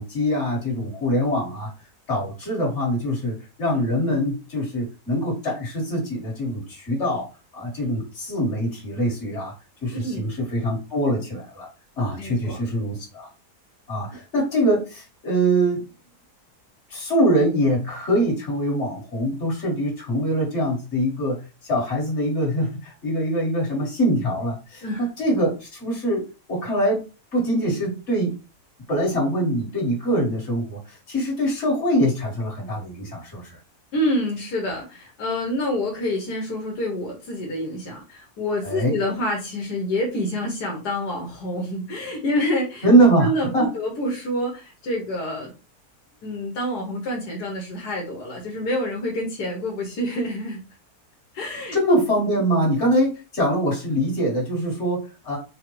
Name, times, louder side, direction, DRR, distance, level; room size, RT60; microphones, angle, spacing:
voice 1, 0.0-1.7 2.1-7.3 7.5-9.5 9.8-11.7 12.0-13.3 13.9-15.8 16.9-26.2 26.5-27.0 27.3-28.3 28.9-33.6 38.6-38.9 42.8-43.7 51.7-55.4, equal, 45° left, -3 dB, 2.1 m, -23 dB
voice 2, 9.9-10.2 12.2-12.6 24.8-25.1 33.9-42.9 43.2-45.5 46.2-50.6 51.3-51.8, left 1 dB, 80° left, -1 dB, 1.6 m, -27 dB
4.8 x 2.3 x 3.1 m, 0.31 s
omnidirectional pair, 1.7 m